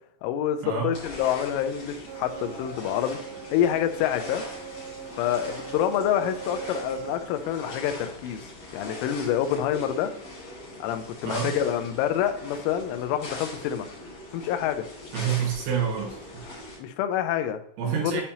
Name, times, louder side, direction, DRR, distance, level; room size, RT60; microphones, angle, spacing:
voice 1, 0.2-3.2 3.5-4.4 5.2-10.1 10.8-13.9 14.3-14.9 16.8-18.2, left 10 dB, 85° left, 8 dB, 2.9 m, -27 dB
sound 1, 0.9-16.8, left 2 dB, 45° left, 3.0 m, -41 dB
sound 2, 2.1-7.3, right 8 dB, 90° right, 3.4 m, -41 dB
voice 2, 15.1-16.4 17.8-18.2, right 7 dB, 75° right, -2 dB, 3.5 m, -28 dB
8.5 x 4.3 x 2.8 m, 0.72 s
omnidirectional pair, 5.9 m